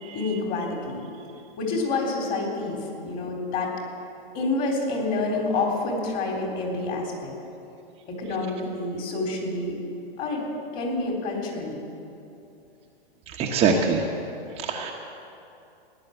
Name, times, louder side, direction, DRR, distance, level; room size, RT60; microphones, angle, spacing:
voice 1, 0.1-1.0 1.6-3.7 4.3-7.3 8.1-9.8 10.2-10.4 10.7-11.8, left 3 dB, 30° left, 0 dB, 3.6 m, -28 dB
voice 2, 13.3-14.1 14.6-14.9, right 5 dB, 20° right, -1 dB, 1.1 m, -23 dB
16.5 x 11.0 x 8.0 m, 2.7 s
hypercardioid pair, 140°, 31 cm